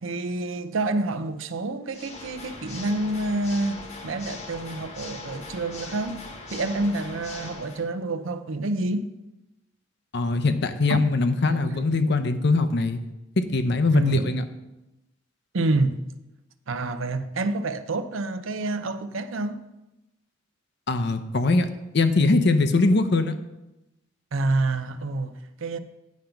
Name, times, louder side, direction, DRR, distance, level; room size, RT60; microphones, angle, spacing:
voice 1, 0.0-9.1 10.9-11.0 11.4-11.8 13.9-14.3 15.5-16.1 16.7-19.6 24.3-25.8, right 2 dB, 80° right, 0.6 m, -28 dB
Water / Mechanisms, 1.9-7.9, left 3 dB, 35° left, 1.1 m, -40 dB
voice 2, 10.1-13.0 13.4-14.4 20.9-21.7 21.9-23.3, left 3 dB, 55° left, 0.7 m, -22 dB
9.5 x 5.2 x 5.9 m
head